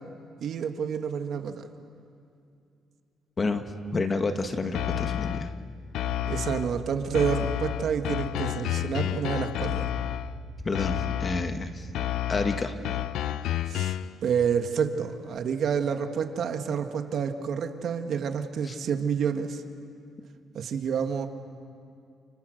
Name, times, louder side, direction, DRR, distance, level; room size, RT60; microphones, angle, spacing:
voice 1, 0.4-1.7 6.3-9.9 13.7-14.0 14.2-19.6 20.5-21.3, right 7 dB, 55° right, 6 dB, 1.8 m, -29 dB
voice 2, 3.9-5.5 10.6-11.9 12.3-12.7 18.6-18.7, left 3 dB, 25° left, 7 dB, 1.5 m, -29 dB
sound 1, 4.7-5.6 5.9-6.8 7.1-10.4 10.7-11.6 11.9-14.2, left 12 dB, 80° left, 0.6 m, -30 dB
sound 2, 6.0-12.1, right 16 dB, 75° right, 0.7 m, -45 dB
30.0 x 29.5 x 6.6 m, 2.5 s
cardioid pair, 145°, 0 cm